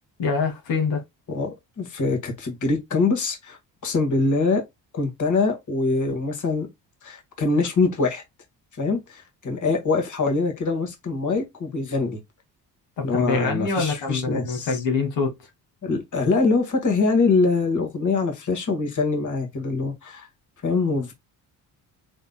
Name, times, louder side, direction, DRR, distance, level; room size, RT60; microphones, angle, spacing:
voice 1, 0.2-1.0 13.0-15.3, left 4 dB, 85° left, 1.8 m, -25 dB
voice 2, 1.3-4.6 4.9-6.7 7.0-8.2 8.8-12.2 13.0-14.8 15.8-20.3 20.6-21.1, left 3 dB, 45° left, 1.8 m, -24 dB
4.1 x 3.6 x 2.3 m
cardioid pair, 80°, 43 cm